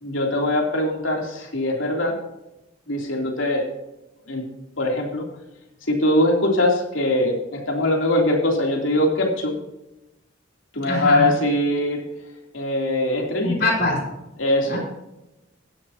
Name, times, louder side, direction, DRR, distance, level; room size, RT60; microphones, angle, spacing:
voice 1, 0.0-2.2 2.9-3.7 4.3-4.4 4.8-5.3 5.9-9.5 10.7-12.0 12.5-13.7 14.4-14.8, left 1 dB, 90° left, 0 dB, 3.1 m, -22 dB
voice 2, 10.8-11.3 13.4-14.0 14.7-14.8, left 2 dB, 55° left, -1 dB, 5.0 m, -23 dB
15.5 x 11.5 x 2.9 m, 0.95 s
head